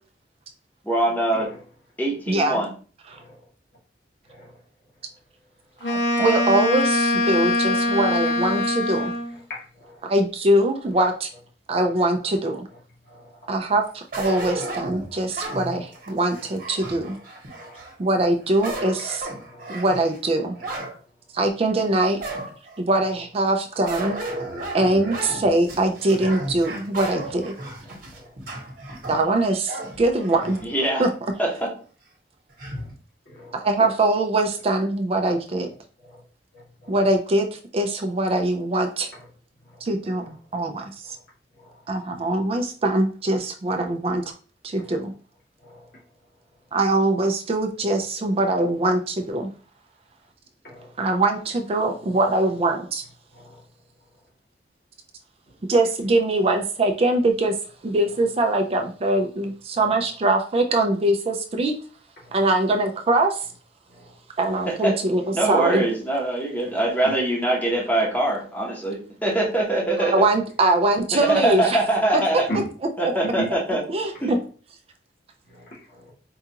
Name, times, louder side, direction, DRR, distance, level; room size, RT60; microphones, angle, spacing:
voice 1, 0.8-1.5 2.0-2.7 30.6-31.0 31.4-31.7 64.7-65.0 65.3-70.1 71.3-72.5 73.0-73.8 74.2-74.3, right 1 dB, 10° left, -2 dB, 0.9 m, -23 dB
voice 2, 2.3-2.6 3.1-3.2 5.8-9.1 10.0-11.3 11.7-12.7 13.5-17.1 18.0-19.3 19.7-20.6 21.3-22.2 22.8-24.2 24.7-27.5 29.1-30.6 31.0-31.1 33.5-35.7 36.9-39.1 39.8-41.2 41.9-44.2 44.6-45.1 46.7-49.5 51.0-53.0 55.7-57.5 57.8-61.7 62.3-63.4 64.4-65.8 70.0-71.8 72.1-72.2 73.0-73.1 73.9-74.4, right 2 dB, 35° right, 4 dB, 0.4 m, -22 dB
Wind instrument woodwind instrument, 5.8-9.4, left 1 dB, 80° left, 0.7 m, -22 dB
voice 3, 9.5-10.0 13.1-13.3 15.1-15.2 17.6-17.8 19.5-19.7 28.1-28.3 33.3-33.5 36.1-36.2 36.5-37.0 41.6-41.7 44.8-44.9 45.6-45.8 50.6-50.9 53.3-53.6 62.3-62.4 64.0-64.1 67.0-67.2 72.5-72.7 73.4-73.5 75.5-75.6 75.9-76.1, equal, 60° left, -5 dB, 1.7 m, -36 dB
sound 1, 14.1-17.9 18.4-21.0 21.4-21.5 22.2-22.8 23.9-30.9 31.3-31.4 32.6-32.9, right 2 dB, 50° right, 1.1 m, -34 dB
4.6 x 2.4 x 2.8 m, 0.40 s
head